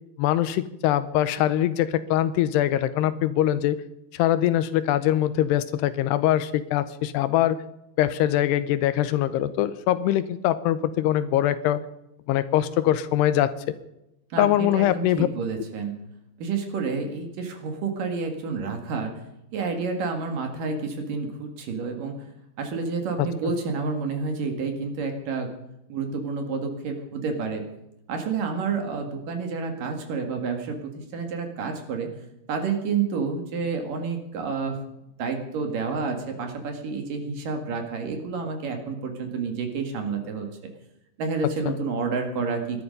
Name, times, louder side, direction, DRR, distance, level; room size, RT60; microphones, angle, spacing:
voice 1, 0.2-3.8 4.1-7.6 8.0-11.8 12.3-13.5 14.4-15.3 41.7-41.8, left 12 dB, 80° left, 14 dB, 2.7 m, -23 dB
voice 2, 14.3-16.0 16.4-19.1 19.5-22.2 22.6-25.6 25.9-27.7 28.1-32.1 32.5-34.9 35.2-40.7 41.2-42.8, right 4 dB, 55° right, 5 dB, 3.2 m, -29 dB
19.0 x 12.5 x 5.3 m, 0.86 s
omnidirectional pair, 4.9 m